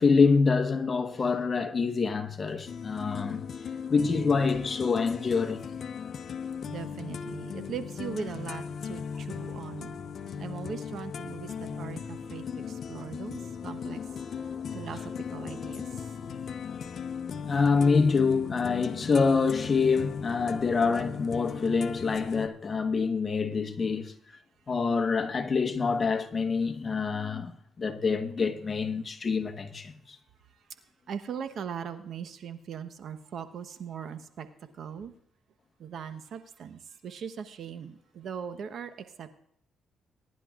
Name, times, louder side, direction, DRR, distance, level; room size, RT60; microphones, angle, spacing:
voice 1, 0.0-3.4 3.9-5.7 17.4-24.1 24.7-30.2, left 5 dB, 35° left, 1.2 m, -26 dB
sound 1, 2.7-22.5, left 6 dB, 55° left, 0.8 m, -38 dB
voice 2, 6.7-9.9 10.4-14.0 14.7-15.8 31.1-34.5 34.7-35.1 35.8-39.3, right 7 dB, 65° right, 1.0 m, -40 dB
21.5 x 10.5 x 2.4 m
cardioid pair, 90°, 0 cm